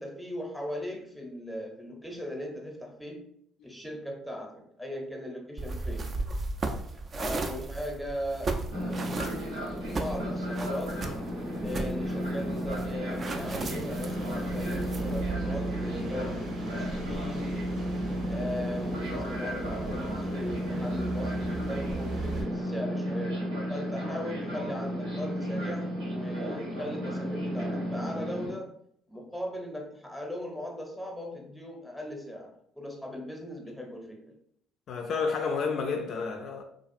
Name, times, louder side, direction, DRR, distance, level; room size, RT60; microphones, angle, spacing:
voice 1, 0.0-3.2 3.6-6.1 7.1-9.5 9.9-11.0 11.6-17.7 18.3-23.4 23.7-28.7 29.1-34.3, left 1 dB, ahead, 0.7 m, -38 dB
sound 1, 5.6-15.3, right 3 dB, 40° right, 0.4 m, -36 dB
Fixed-wing aircraft airplane, 8.7-28.5, equal, 90° right, 1.2 m, -33 dB
sound 2, 13.4-22.4, right 4 dB, 65° right, 0.8 m, -39 dB
voice 2, 34.9-36.6, left 5 dB, 60° left, 0.3 m, -31 dB
2.4 x 2.3 x 2.5 m
hypercardioid pair, 65°, 0 cm